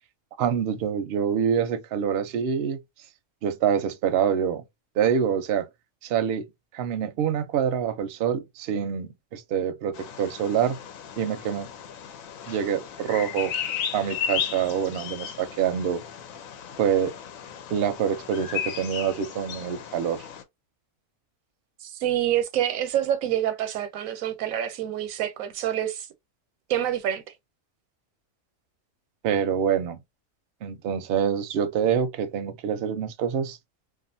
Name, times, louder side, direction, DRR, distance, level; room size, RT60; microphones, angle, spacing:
voice 1, 0.4-2.8 3.4-4.6 5.0-5.7 6.0-6.5 6.7-10.8 11.2-11.7 12.5-13.5 13.9-16.0 16.8-17.1 17.7-20.3 29.2-30.0 30.6-33.6, right 8 dB, 60° right, 0.7 m, -26 dB
Bird vocalization bird call bird song, 9.9-20.4, left 8 dB, 90° left, 1.0 m, -35 dB
voice 2, 21.8-26.1 26.7-27.2, right 11 dB, 85° right, 1.0 m, -27 dB
2.4 x 2.4 x 2.5 m
omnidirectional pair, 1.4 m